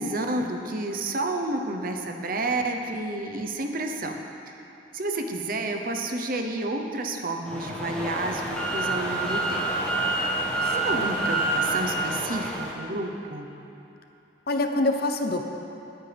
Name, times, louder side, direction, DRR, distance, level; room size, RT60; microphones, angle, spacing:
voice 1, 0.0-4.2 4.9-9.7 10.7-13.5, right 2 dB, 45° right, 4 dB, 0.8 m, -30 dB
sound 1, 7.5-12.7, right 2 dB, 5° left, 1.5 m, -27 dB
voice 2, 10.6-11.0 14.5-15.4, left 2 dB, 50° left, 5 dB, 0.7 m, -26 dB
18.5 x 9.0 x 3.5 m, 3.0 s
head